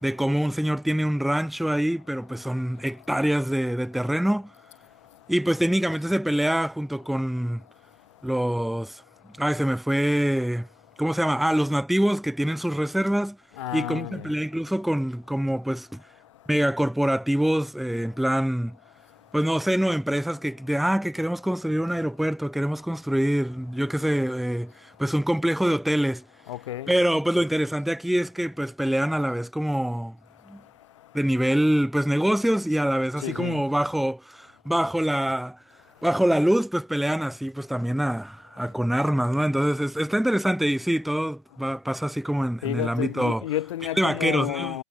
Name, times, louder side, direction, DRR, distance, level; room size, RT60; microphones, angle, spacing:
voice 1, 0.0-4.5 5.3-7.6 8.2-9.0 9.4-10.7 11.0-13.4 13.7-16.0 16.5-18.8 19.3-26.2 26.9-30.2 30.5-30.6 31.1-35.6 36.0-43.4 44.0-44.8, right 1 dB, ahead, 1.6 m, -25 dB
voice 2, 13.6-14.3 26.5-26.9 33.2-33.6 42.6-44.8, left 13 dB, 65° left, 1.3 m, -30 dB
hypercardioid pair, 140°, 17 cm